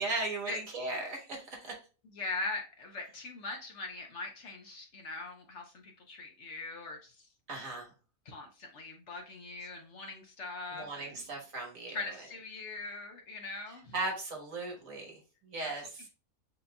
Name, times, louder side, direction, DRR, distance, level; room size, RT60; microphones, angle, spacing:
voice 1, 0.0-1.8 7.5-7.9 10.7-12.3 13.7-16.1, right 2 dB, 65° right, 0 dB, 1.6 m, -38 dB
voice 2, 2.1-7.3 8.3-11.1 11.9-13.9 15.6-15.7, left 3 dB, 60° left, 2 dB, 1.0 m, -41 dB
7.8 x 2.6 x 2.2 m, 0.35 s
omnidirectional pair, 1.5 m